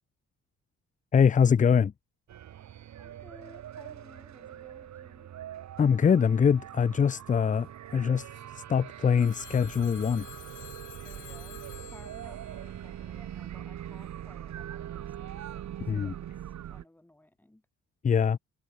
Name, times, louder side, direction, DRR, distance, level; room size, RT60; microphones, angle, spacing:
voice 1, 1.1-1.9 5.8-7.7 7.9-8.3 8.5-10.3 15.9-16.1 18.0-18.4, left 7 dB, 25° left, 0.6 m, -23 dB
sound 1, 2.3-16.8, right 11 dB, 60° right, 5.8 m, -42 dB
voice 2, 2.9-5.3 11.0-16.2 16.6-17.6, left 1 dB, 5° left, 7.5 m, -56 dB
Telephone, 9.2-13.4, left 13 dB, 75° left, 3.3 m, -50 dB
cardioid pair, 175°, 31 cm